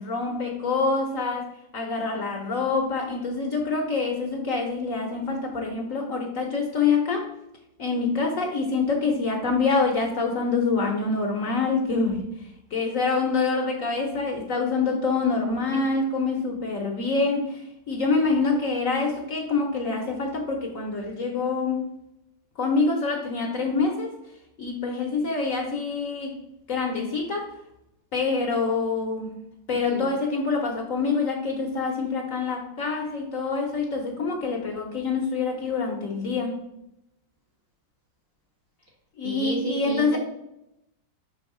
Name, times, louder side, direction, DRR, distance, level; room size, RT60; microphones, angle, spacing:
voice 1, 0.0-7.3 7.8-12.2 12.7-21.9 22.6-24.1 24.6-26.4 26.7-27.5 28.1-29.3 29.7-36.6 39.2-40.2, left 4 dB, 55° left, 1 dB, 1.0 m, -26 dB
voice 2, 39.2-40.2, right 1 dB, 40° right, 0 dB, 1.1 m, -31 dB
6.2 x 3.5 x 4.8 m, 0.83 s
omnidirectional pair, 2.0 m